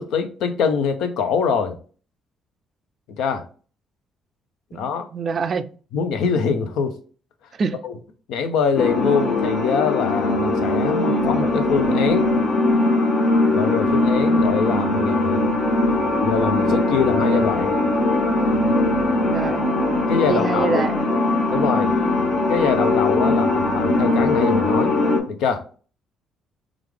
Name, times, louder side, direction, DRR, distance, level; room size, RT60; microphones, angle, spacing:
voice 1, 0.0-1.8 3.2-3.4 4.7-5.1 5.9-6.9 7.8-8.0 8.3-12.3 13.5-15.4 16.2-17.7 20.1-20.9 21.5-21.9 22.5-24.9 25.3-25.6, left 6 dB, 80° left, 0.6 m, -23 dB
voice 2, 4.7-5.7 7.5-7.8 19.2-19.6 20.3-21.0, right 5 dB, 50° right, 0.3 m, -25 dB
sound 1, 8.8-25.2, left 2 dB, 50° left, 0.9 m, -20 dB
3.2 x 2.4 x 3.4 m
supercardioid pair, 70°, 0 cm